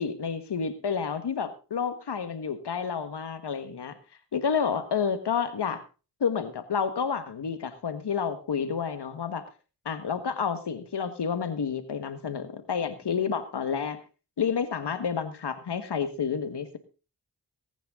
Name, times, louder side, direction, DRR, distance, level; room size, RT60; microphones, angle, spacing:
voice 1, 0.0-4.0 4.3-5.8 6.2-9.4 9.8-14.0 14.4-16.8, left 6 dB, 85° left, 10 dB, 1.6 m, -30 dB
19.0 x 9.3 x 3.7 m, 0.34 s
cardioid pair, 45°, 40 cm